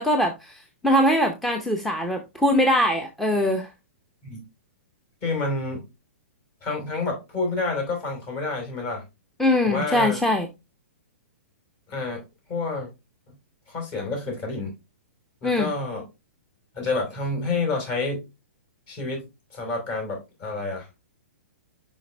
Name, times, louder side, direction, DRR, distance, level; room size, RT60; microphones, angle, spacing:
voice 1, 0.0-3.7 9.4-10.5 15.4-15.7, left 1 dB, 5° left, 0.6 m, -22 dB
voice 2, 5.2-5.8 6.6-9.0 9.6-10.2 11.9-12.2 12.5-12.9 13.7-14.7 15.4-16.0 16.7-18.2 18.9-19.3 19.5-20.9, left 3 dB, 40° left, 4.3 m, -28 dB
5.6 x 5.1 x 3.4 m
hypercardioid pair, 135°, 8 cm